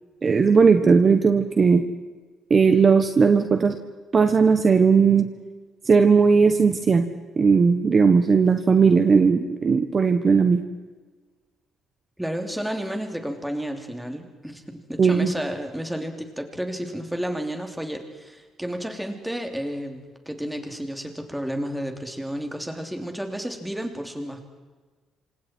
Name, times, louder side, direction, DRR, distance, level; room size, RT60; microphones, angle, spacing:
voice 1, 0.2-1.8 2.5-3.7 4.1-5.3 5.9-7.1 7.4-10.6 15.0-15.3, right 5 dB, 30° right, 7 dB, 1.4 m, -17 dB
voice 2, 12.2-24.5, equal, 5° right, 4 dB, 3.2 m, -31 dB
28.0 x 26.5 x 4.6 m, 1.3 s
cardioid pair, 140°, 0 cm